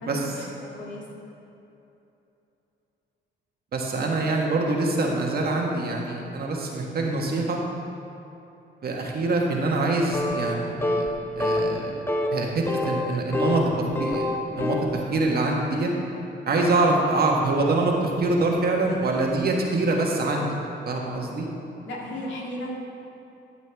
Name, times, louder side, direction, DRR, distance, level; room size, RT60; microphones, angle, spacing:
voice 1, 0.0-1.0 21.8-22.8, left 1 dB, 70° left, -2 dB, 2.0 m, -35 dB
voice 2, 3.7-7.6 8.8-11.1 11.3-11.9 12.3-15.9 16.4-20.6 20.9-21.5, right 2 dB, 50° right, -1 dB, 1.5 m, -25 dB
sound 1, 10.1-10.6 10.8-11.1 11.4-11.8 12.1-12.3 12.7-13.7 13.9-14.9, left 2 dB, 10° left, 0.8 m, -26 dB
12.5 x 7.7 x 3.5 m, 2.9 s
cardioid pair, 90°, 20 cm